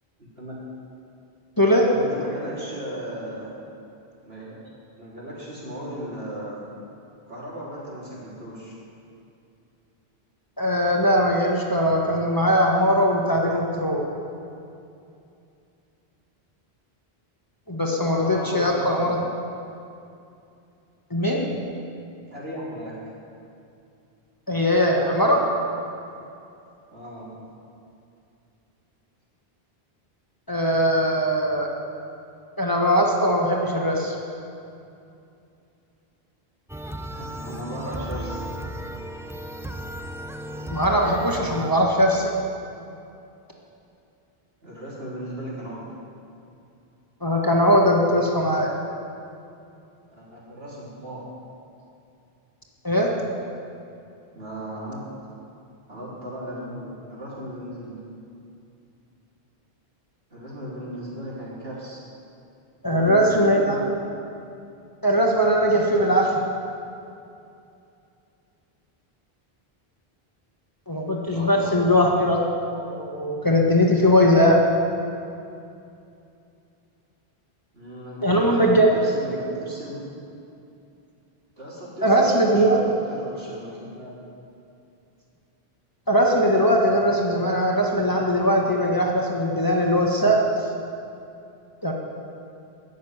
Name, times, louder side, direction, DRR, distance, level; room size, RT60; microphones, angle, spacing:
voice 1, 0.2-0.5 1.9-3.5 4.2-4.6 5.0-6.6 7.3-8.7 18.0-19.3 22.3-22.9 26.9-27.3 37.1-38.4 44.6-45.9 50.1-51.3 54.3-55.3 55.9-58.0 60.3-62.0 62.9-63.9 71.3-71.8 77.7-80.1 81.6-84.2, equal, 75° right, -7 dB, 4.2 m, -36 dB
voice 2, 1.6-1.9 10.6-14.0 17.7-19.2 21.1-21.5 24.5-25.5 30.5-31.7 32.6-34.1 40.7-42.3 47.2-48.7 52.8-53.1 62.8-63.8 65.0-66.3 70.9-72.4 72.7-74.6 78.2-79.0 82.0-82.8 86.1-90.7 91.8-91.9, equal, 20° left, -2 dB, 1.4 m, -20 dB
sound 1, 36.7-41.7, equal, 5° right, 0.5 m, -35 dB
14.5 x 6.6 x 9.4 m, 2.6 s
omnidirectional pair, 1.1 m